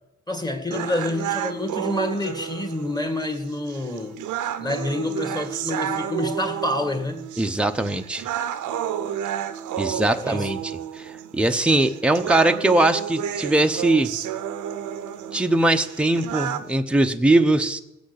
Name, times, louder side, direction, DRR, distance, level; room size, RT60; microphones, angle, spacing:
voice 1, 0.3-4.2 4.6-7.3 10.1-10.5, left 1 dB, 15° left, 1.9 m, -28 dB
sound 1, 0.7-16.7, right 10 dB, 80° right, 0.9 m, -31 dB
voice 2, 7.4-8.3 9.8-14.1 15.3-17.8, right 2 dB, 5° right, 0.8 m, -21 dB
17.0 x 6.3 x 8.2 m
cardioid pair, 90°, 30 cm